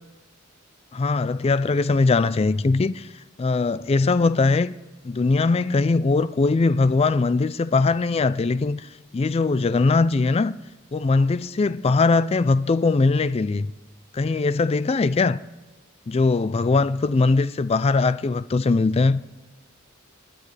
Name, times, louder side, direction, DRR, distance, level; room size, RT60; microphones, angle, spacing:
voice 1, 0.9-3.1 3.4-4.7 5.0-10.5 10.9-13.7 14.1-15.4 16.1-19.2, left 3 dB, 30° left, 0.3 m, -21 dB
28.0 x 9.6 x 3.3 m
head